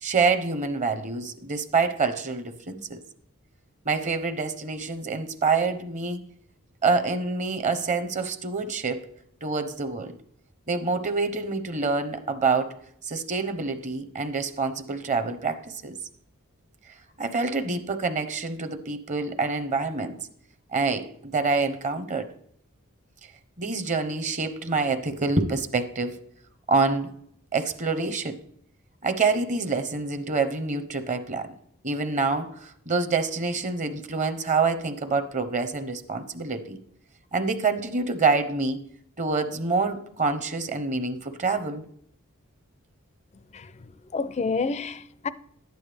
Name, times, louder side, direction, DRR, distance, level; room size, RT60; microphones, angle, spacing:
voice 1, 0.0-3.0 3.9-6.2 6.8-9.1 9.4-10.2 10.7-12.8 13.1-16.0 17.2-20.2 20.7-22.3 23.6-26.2 26.7-27.1 27.5-28.4 29.0-31.5 31.8-36.8 37.3-38.8 39.2-41.8, right 4 dB, 35° right, 0.8 m, -26 dB
voice 2, 43.5-43.9 44.1-45.3, left 4 dB, 30° left, 0.4 m, -29 dB
11.5 x 9.3 x 3.4 m
head